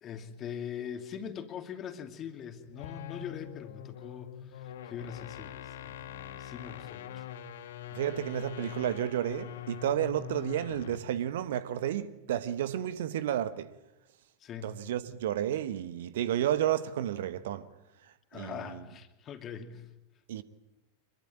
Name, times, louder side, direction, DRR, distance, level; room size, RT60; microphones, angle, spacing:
voice 1, 0.0-7.3 14.4-14.7 18.3-19.9, left 8 dB, 30° left, 2.7 m, -42 dB
sound 1, 2.7-11.1, left 9 dB, 60° left, 1.7 m, -43 dB
voice 2, 7.9-13.7 14.6-17.7 18.0-18.8 20.3-20.4, right 11 dB, 55° right, 1.2 m, -32 dB
26.0 x 22.5 x 9.0 m
figure-of-eight pair, 90°, 0 cm